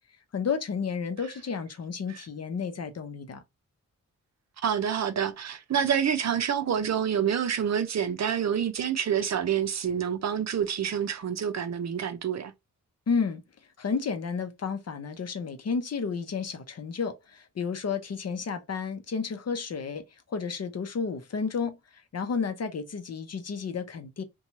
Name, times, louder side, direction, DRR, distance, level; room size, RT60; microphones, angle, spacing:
voice 1, 0.3-3.4 13.1-13.4 13.8-24.2, left 5 dB, 50° left, 0.6 m, -32 dB
voice 2, 4.6-12.5, right 8 dB, 55° right, 0.5 m, -27 dB
2.6 x 2.3 x 3.0 m
cardioid pair, 60°, 33 cm